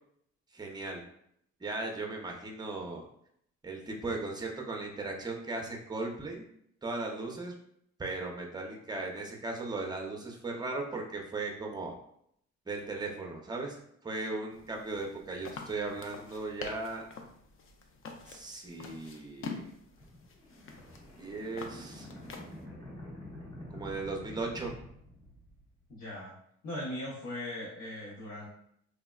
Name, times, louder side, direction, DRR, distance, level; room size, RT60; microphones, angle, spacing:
voice 1, 0.5-1.0 1.6-3.0 3.6-6.5 6.8-7.5 8.0-11.9 12.7-17.0 18.3-19.6 21.2-22.1 23.7-24.7, right 3 dB, 15° right, 1 dB, 0.6 m, -37 dB
sound 1, 14.5-22.6, left 4 dB, 45° left, 0.4 m, -46 dB
sound 2, 20.0-25.8, left 1 dB, 20° left, 0.8 m, -47 dB
voice 2, 25.9-26.3 26.6-28.5, left 1 dB, 70° left, -7 dB, 0.9 m, -39 dB
3.5 x 2.0 x 2.3 m, 0.70 s
cardioid pair, 90°, 30 cm